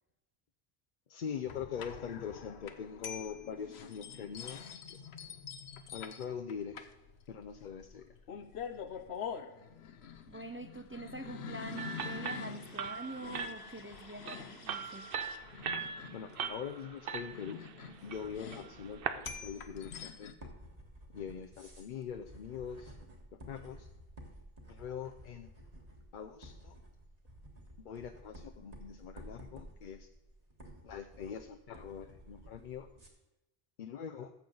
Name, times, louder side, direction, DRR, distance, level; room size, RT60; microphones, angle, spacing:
voice 1, 1.1-5.0 5.9-6.9 7.3-8.1 16.1-17.6 18.0-20.5 21.1-23.0 23.5-23.9 24.7-25.5 26.1-26.8 27.8-30.1 30.8-32.9 33.8-34.3, left 7 dB, 55° left, 5 dB, 0.7 m, -43 dB
sound 1, 1.5-20.3, left 7 dB, 85° left, 1.0 m, -46 dB
voice 2, 10.3-15.1, right 2 dB, 20° right, 8 dB, 0.4 m, -45 dB
sound 2, 11.8-19.3, right 6 dB, 65° right, 0.8 m, -41 dB
sound 3, 18.0-33.1, equal, 40° right, 1.8 m, -53 dB
14.0 x 7.3 x 3.9 m, 0.95 s
omnidirectional pair, 1.1 m